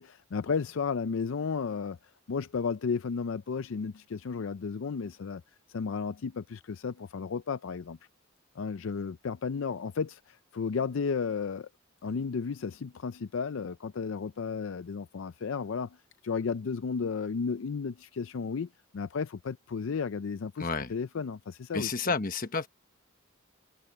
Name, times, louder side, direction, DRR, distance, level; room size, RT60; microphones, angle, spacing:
voice 1, 0.0-2.0 2.3-5.4 5.7-8.0 8.6-11.7 12.0-16.0 16.2-21.9, left 5 dB, 65° left, 0.4 m, -33 dB
voice 2, 20.6-20.9 21.7-22.7, left 4 dB, 40° left, 1.2 m, -30 dB
head